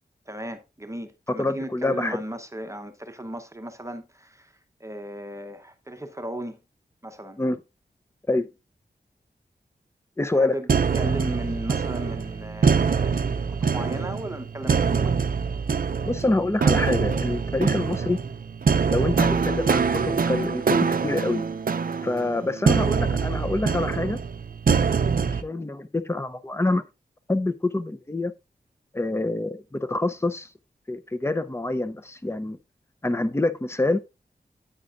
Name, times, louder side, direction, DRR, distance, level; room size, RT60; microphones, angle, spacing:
voice 1, 0.3-4.5 4.8-6.6 7.0-7.4 10.3-15.2 22.2-22.5, right 1 dB, 20° right, 0.9 m, -36 dB
voice 2, 1.4-2.2 7.4-7.6 8.3-8.5 10.2-10.5 16.0-18.2 18.9-21.4 22.0-24.2 25.2-26.8 27.3-28.3 28.9-30.5 30.9-32.6 33.0-34.0, left 2 dB, 15° left, 0.6 m, -26 dB
sound 1, 10.7-25.4, right 5 dB, 60° right, 0.5 m, -24 dB
9.5 x 8.7 x 2.5 m
wide cardioid pair, 80°, 17 cm